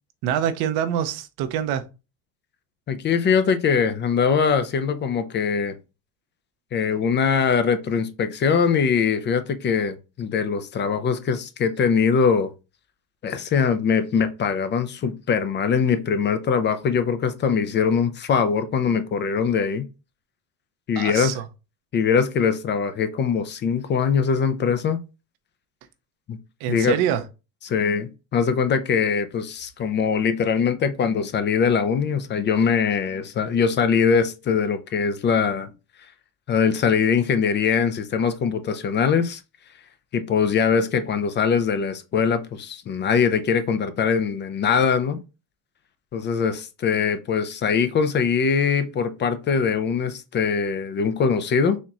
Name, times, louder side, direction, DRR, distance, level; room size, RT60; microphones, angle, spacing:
voice 1, 0.2-1.8 20.9-21.5 26.6-27.2, right 10 dB, 65° right, 0.7 m, -25 dB
voice 2, 2.9-5.8 6.7-12.5 13.2-19.9 20.9-21.3 21.9-25.0 26.3-26.4 26.7-26.9 27.6-35.7 36.5-39.4 40.1-45.2 46.1-51.8, left 6 dB, 30° left, 0.4 m, -22 dB
4.2 x 2.9 x 2.4 m
supercardioid pair, 110°, 40 cm